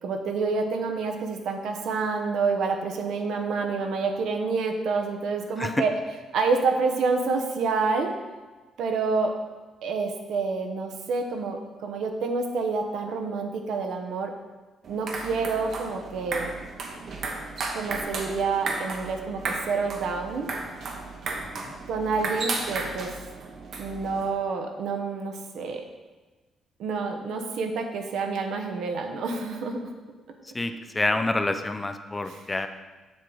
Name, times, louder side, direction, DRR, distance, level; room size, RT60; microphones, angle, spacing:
voice 1, 0.0-5.9 6.3-8.1 8.8-9.3 9.8-14.3 14.9-16.6 17.7-20.5 21.9-23.1 23.8-25.8 26.8-29.9 32.3-32.4, right 4 dB, 75° right, 4 dB, 0.9 m, -28 dB
sound 1, 14.8-24.3, right 3 dB, 55° right, 1.0 m, -34 dB
voice 2, 21.4-21.8 30.5-32.7, left 2 dB, 15° left, 8 dB, 0.4 m, -28 dB
7.3 x 6.1 x 3.9 m, 1.2 s
cardioid pair, 125°, 0 cm